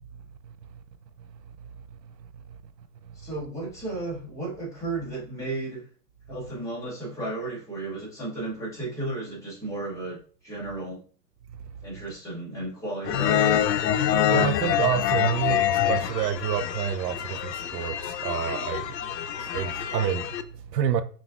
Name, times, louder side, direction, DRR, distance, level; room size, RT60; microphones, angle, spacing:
voice 1, 3.2-5.9 6.3-11.0 11.8-13.4, right 2 dB, 5° left, 0.9 m, -34 dB
sound 1, 13.0-20.4, left 10 dB, 85° left, 0.6 m, -26 dB
voice 2, 14.3-21.0, right 9 dB, 80° right, 0.6 m, -29 dB
5.8 x 2.4 x 2.4 m
hypercardioid pair, 150°, 49 cm